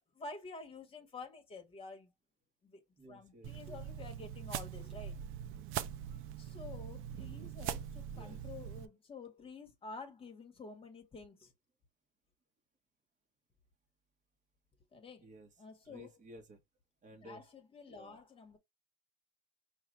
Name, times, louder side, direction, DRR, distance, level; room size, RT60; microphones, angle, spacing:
voice 1, 0.0-2.1 2.6-2.8 3.1-5.2 6.4-11.5 14.9-15.3 15.6-16.1 17.2-18.6, left 3 dB, 15° left, 1.5 m, -50 dB
voice 2, 3.0-3.5 8.1-8.4 15.2-15.5 15.8-16.6 17.0-17.4 17.9-18.2, right 1 dB, 20° right, 1.6 m, -55 dB
sound 1, 3.4-8.9, right 10 dB, 35° right, 0.5 m, -42 dB
5.7 x 2.5 x 3.3 m
supercardioid pair, 135°, 36 cm